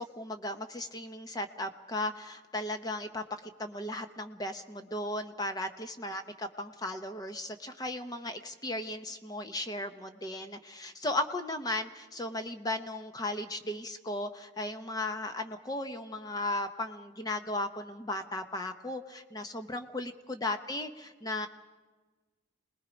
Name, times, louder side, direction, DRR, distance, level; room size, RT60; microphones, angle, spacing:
voice 1, 0.0-3.2 3.6-21.5, left 1 dB, 20° left, 7 dB, 0.9 m, -36 dB
27.5 x 20.0 x 5.2 m, 1.3 s
head